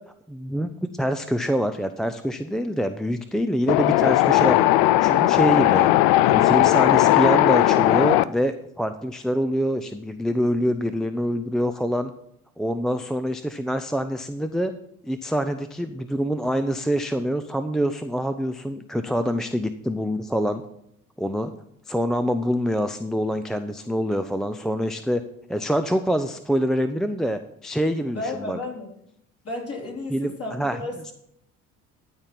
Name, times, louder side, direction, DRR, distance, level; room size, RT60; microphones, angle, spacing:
voice 1, 0.3-4.6 5.0-5.9 6.3-12.1 12.6-14.7 15.0-20.6 21.2-21.5 21.9-25.2 25.5-28.6 30.1-30.8, equal, ahead, 9 dB, 0.5 m, -25 dB
Wind, 3.7-8.2, left 15 dB, 60° left, 0.5 m, -17 dB
voice 2, 28.1-28.9 29.4-31.1, left 2 dB, 35° left, -1 dB, 4.0 m, -33 dB
12.5 x 4.3 x 7.2 m, 0.75 s
hypercardioid pair, 55°, 40 cm